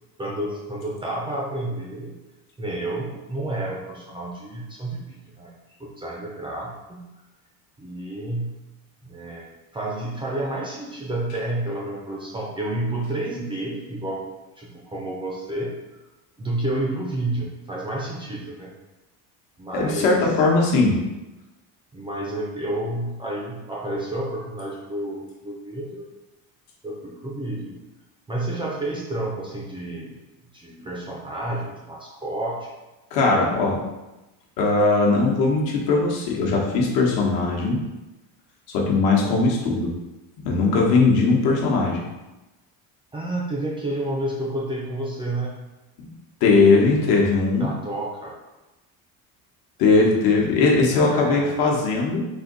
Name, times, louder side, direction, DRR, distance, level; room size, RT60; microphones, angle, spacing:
voice 1, 0.2-2.2 2.6-5.5 5.8-7.1 7.8-8.5 9.0-14.3 14.6-15.7 16.4-18.7 19.6-20.3 21.9-26.1 26.8-27.8 28.3-30.2 30.5-32.7 43.1-45.6 47.6-48.4 50.9-51.6, right 1 dB, 15° right, -4 dB, 0.5 m, -30 dB
voice 2, 19.7-21.0 33.1-33.8 34.6-37.8 38.7-40.0 40.4-42.1 46.0-46.1 46.4-47.7 49.8-52.3, left 3 dB, 65° left, -1 dB, 1.1 m, -19 dB
4.3 x 2.6 x 3.8 m, 1.0 s
cardioid pair, 160°, 39 cm